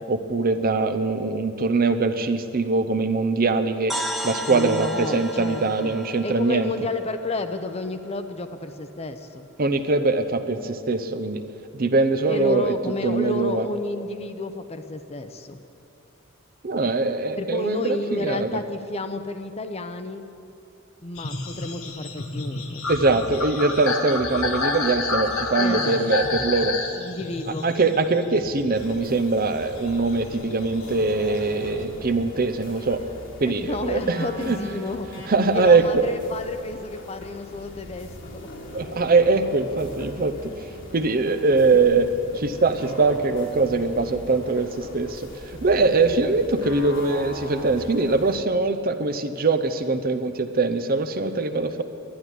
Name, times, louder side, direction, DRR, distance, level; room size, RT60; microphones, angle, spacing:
voice 1, 0.1-3.9 4.2-6.7 9.6-11.4 11.7-12.7 13.0-13.7 16.6-18.6 22.9-26.7 27.6-33.0 33.4-34.6 35.3-36.0 38.7-40.5 40.9-42.1 42.4-51.8, right 3 dB, 45° right, 9 dB, 0.7 m, -22 dB
sound 1, 3.9-7.8, right 1 dB, ahead, 0.9 m, -34 dB
voice 2, 4.5-6.0 6.2-9.5 12.2-15.6 17.4-20.2 21.0-22.8 25.6-26.3 26.9-27.7 33.5-35.1 35.4-38.1 41.7-41.8, left 2 dB, 30° left, 8 dB, 0.7 m, -31 dB
sound 2, 21.2-29.1 29.6-31.8, left 3 dB, 85° left, 1.4 m, -30 dB
sound 3, 28.8-48.4, left 1 dB, 60° left, 1.9 m, -40 dB
11.5 x 11.0 x 9.9 m, 2.6 s
head